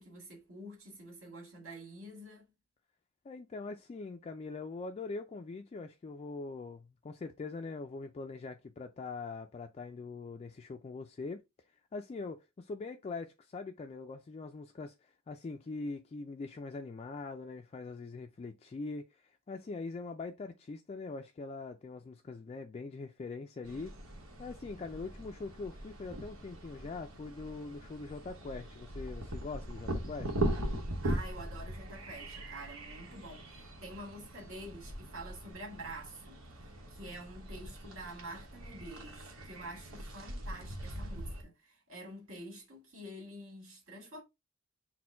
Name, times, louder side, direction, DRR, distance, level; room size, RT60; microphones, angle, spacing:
voice 1, 0.0-2.5 31.0-44.2, right 1 dB, 70° right, 1.9 m, -48 dB
voice 2, 3.2-11.4 11.9-23.9 24.4-30.5, left 3 dB, 30° left, 0.3 m, -42 dB
sound 1, 23.6-41.4, right 1 dB, 85° right, 1.1 m, -40 dB
4.3 x 2.2 x 4.3 m
head